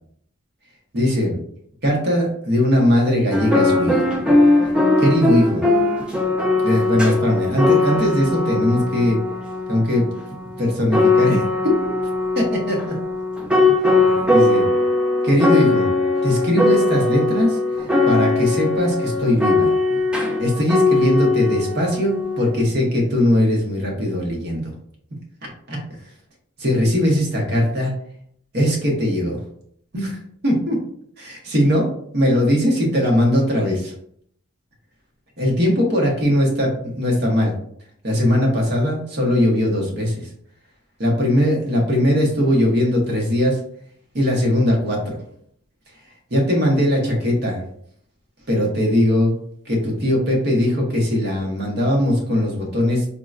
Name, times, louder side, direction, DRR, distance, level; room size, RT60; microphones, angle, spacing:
voice 1, 0.9-1.4 1.8-4.1 5.0-5.6 6.6-9.2 9.7-11.7 12.3-12.9 14.3-14.7 15.2-15.9 16.2-19.7 20.4-24.7 25.4-25.8 26.6-27.9 28.5-29.4 29.9-30.2 30.4-30.8 31.2-33.9 35.4-37.5 38.0-40.3 41.0-43.6 44.1-45.2 46.3-47.6 48.5-49.3 49.7-53.1, left 1 dB, 50° right, -1 dB, 0.9 m, -20 dB
sound 1, 3.3-22.6, left 2 dB, 5° right, 0.3 m, -19 dB
3.7 x 2.1 x 2.4 m, 0.65 s
head